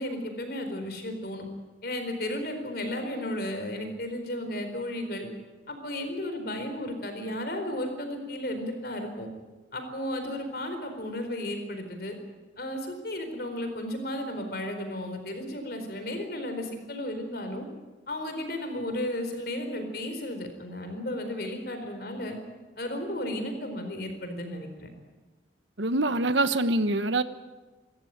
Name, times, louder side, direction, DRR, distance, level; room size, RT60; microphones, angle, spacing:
voice 1, 0.0-1.4 1.8-5.3 5.7-9.3 9.7-12.1 12.6-17.7 18.1-22.4 22.8-24.9, left 1 dB, 55° left, 6 dB, 4.4 m, -34 dB
voice 2, 25.8-27.2, right 2 dB, 85° right, 12 dB, 1.2 m, -24 dB
26.0 x 14.0 x 9.5 m, 1.3 s
head